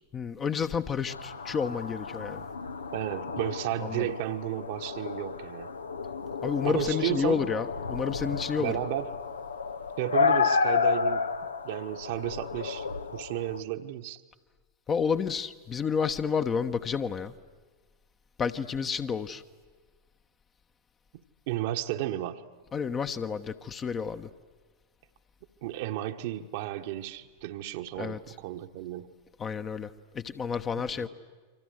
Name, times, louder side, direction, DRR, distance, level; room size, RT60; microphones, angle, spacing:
voice 1, 0.1-2.4 3.8-4.1 6.4-8.8 14.9-17.3 18.4-19.4 22.7-24.3 28.0-28.3 29.4-29.9 30.1-31.1, left 6 dB, 25° left, 9 dB, 1.1 m, -30 dB
sound 1, 1.1-13.6, left 5 dB, 75° left, 1.0 m, -31 dB
voice 2, 2.9-5.7 6.6-7.5 8.6-9.1 10.0-11.3 11.6-12.9 13.1-14.2 21.5-22.4 25.6-29.1 30.9-31.1, right 13 dB, 50° right, 6 dB, 1.3 m, -33 dB
29.5 x 25.0 x 7.9 m, 1.4 s
figure-of-eight pair, 90°, 0 cm